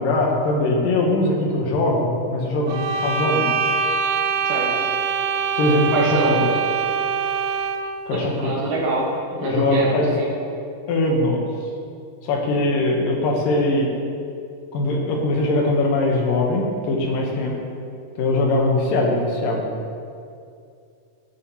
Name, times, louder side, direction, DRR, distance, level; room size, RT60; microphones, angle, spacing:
voice 1, 0.0-3.8 5.6-6.4 8.1-8.6 9.4-10.2 10.9-11.4 12.2-13.9 14.7-17.5 18.2-19.6, left 2 dB, 85° left, 0 dB, 2.8 m, -21 dB
sound 1, 2.7-8.0, right 6 dB, 85° right, 1.6 m, -23 dB
voice 2, 5.9-6.3 8.1-10.3, right 2 dB, 65° right, -4 dB, 2.6 m, -25 dB
14.0 x 6.9 x 3.0 m, 2.4 s
omnidirectional pair, 3.8 m